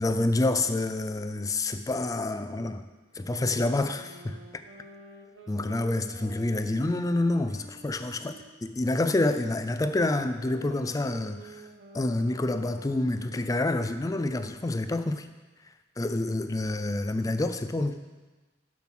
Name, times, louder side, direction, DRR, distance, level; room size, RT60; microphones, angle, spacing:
voice 1, 0.0-2.8 3.1-4.6 5.5-11.7 11.9-15.3 16.0-18.0, left 2 dB, 20° left, 9 dB, 0.4 m, -28 dB
sound 1, 3.1-8.5 9.0-13.9, right 1 dB, 80° right, 1.4 m, -49 dB
7.0 x 6.2 x 6.0 m, 1.2 s
head